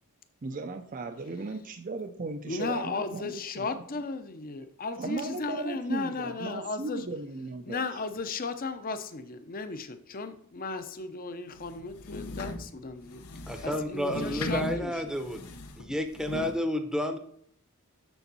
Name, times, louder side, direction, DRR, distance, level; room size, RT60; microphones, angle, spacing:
voice 1, 0.4-3.8 5.0-7.8, right 3 dB, 35° right, 6 dB, 0.5 m, -37 dB
voice 2, 2.5-7.1 7.7-13.2 13.6-15.1, left 3 dB, 40° left, 10 dB, 0.7 m, -35 dB
sound 1, 11.6-16.6, left 3 dB, 80° left, 0.8 m, -38 dB
voice 3, 13.5-15.4 15.8-17.2, equal, 5° right, 7 dB, 0.7 m, -31 dB
7.0 x 7.0 x 4.1 m, 0.65 s
head